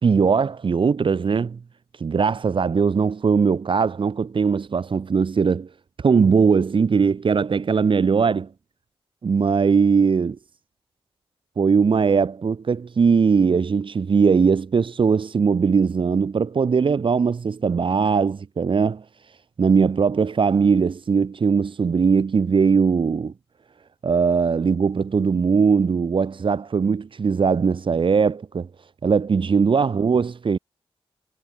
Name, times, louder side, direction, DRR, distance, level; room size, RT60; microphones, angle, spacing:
voice 1, 0.0-1.6 2.0-5.7 6.0-8.5 9.2-10.4 11.6-19.0 19.6-23.3 24.0-28.7 29.0-30.6, right 5 dB, 60° right, 4.2 m, -20 dB
wide cardioid pair, 145°, 10 cm